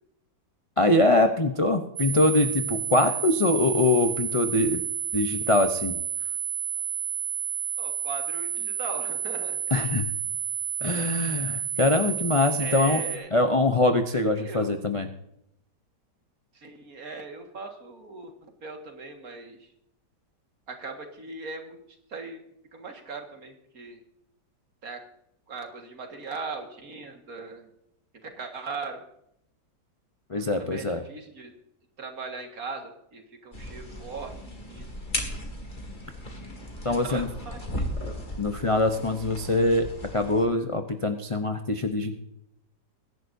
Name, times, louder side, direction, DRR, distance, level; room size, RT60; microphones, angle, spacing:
voice 1, 0.8-4.8 5.1-6.0 9.7-10.0 10.8-13.0 13.3-15.1 30.3-31.0 36.8-37.3 38.4-39.9 40.1-42.2, left 2 dB, 50° left, 5 dB, 0.4 m, -23 dB
sound 1, 2.0-13.2, right 9 dB, 80° right, 1.4 m, -31 dB
voice 2, 7.8-9.6 12.6-13.3 14.4-14.8 16.5-19.7 20.7-22.4 22.7-24.0 24.8-25.0 25.5-27.7 28.2-29.0 30.6-31.5 32.0-34.4 34.7-34.9 36.8-38.1, right 4 dB, 55° right, 4 dB, 2.2 m, -39 dB
sound 2, 33.5-40.5, left 1 dB, 25° left, 2.3 m, -36 dB
22.0 x 11.0 x 2.7 m, 0.78 s
omnidirectional pair, 1.9 m